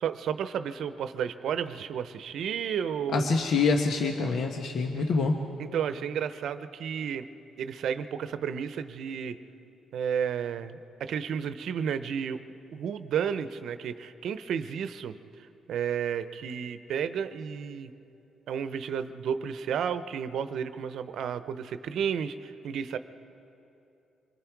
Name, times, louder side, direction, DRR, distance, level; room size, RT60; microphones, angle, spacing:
voice 1, 0.0-3.4 5.0-5.1 5.6-7.3 7.6-9.4 9.9-12.4 12.7-17.9 18.5-23.0, right 8 dB, 70° right, 11 dB, 0.8 m, -32 dB
voice 2, 3.1-5.3, left 4 dB, 65° left, 3 dB, 1.2 m, -25 dB
26.0 x 21.0 x 4.7 m, 2.9 s
cardioid pair, 90°, 0 cm